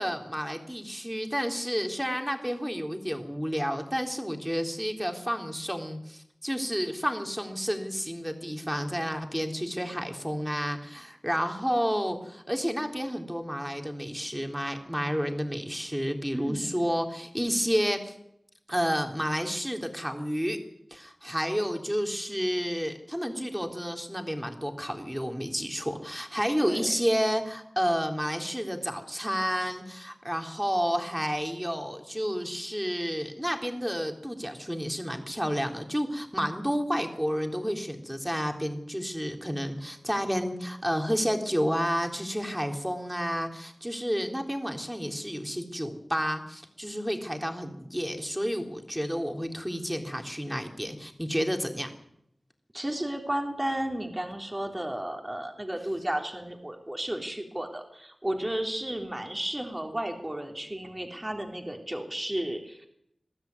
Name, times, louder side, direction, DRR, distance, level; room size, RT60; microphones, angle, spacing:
voice 1, 0.0-18.1 18.7-20.6 20.9-51.9, equal, 5° right, 4 dB, 3.8 m, -30 dB
voice 2, 16.3-16.9 26.6-26.9 52.7-62.9, right 1 dB, 20° right, 3 dB, 3.7 m, -33 dB
22.0 x 13.0 x 9.7 m, 0.76 s
cardioid pair, 40°, 0 cm